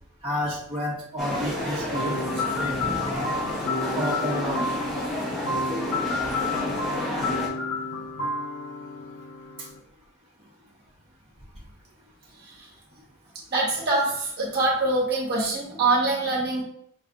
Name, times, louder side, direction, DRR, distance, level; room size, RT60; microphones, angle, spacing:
voice 1, 0.2-2.8 3.9-4.6, left 1 dB, 25° right, -7 dB, 1.2 m, -30 dB
sound 1, 1.2-7.5, left 1 dB, ahead, 0.9 m, -30 dB
sound 2, 1.3-7.5, equal, 20° left, 0.9 m, -46 dB
sound 3, 1.9-9.8, left 3 dB, 70° left, 0.7 m, -30 dB
voice 2, 12.4-12.7 13.5-16.6, right 2 dB, 45° right, -3 dB, 1.3 m, -24 dB
5.2 x 3.3 x 2.5 m, 0.68 s
head